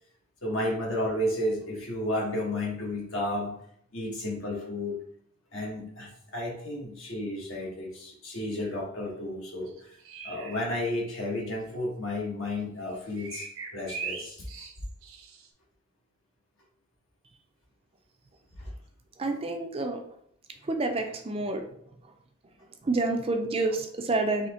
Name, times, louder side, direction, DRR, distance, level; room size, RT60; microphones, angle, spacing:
voice 1, 0.4-3.5 3.9-5.0 5.5-9.9 10.2-13.5 13.7-14.7 18.6-18.7, left 1 dB, 60° left, -1 dB, 1.3 m, -32 dB
sound 1, 9.7-10.6 13.2-15.5, right 5 dB, 70° right, 0.7 m, -40 dB
voice 2, 19.2-20.0 20.6-21.6 22.8-24.5, right 2 dB, 25° right, 4 dB, 0.4 m, -28 dB
4.2 x 2.8 x 4.2 m, 0.67 s
head